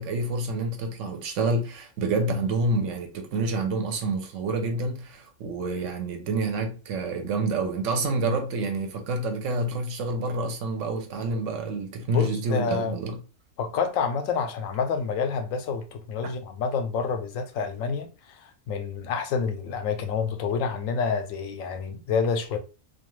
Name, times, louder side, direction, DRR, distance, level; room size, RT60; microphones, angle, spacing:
voice 1, 0.0-13.2, right 2 dB, 70° right, 1.0 m, -28 dB
voice 2, 12.1-12.9 13.6-22.6, left 5 dB, 80° left, 1.0 m, -28 dB
2.4 x 2.3 x 3.0 m
omnidirectional pair, 1.3 m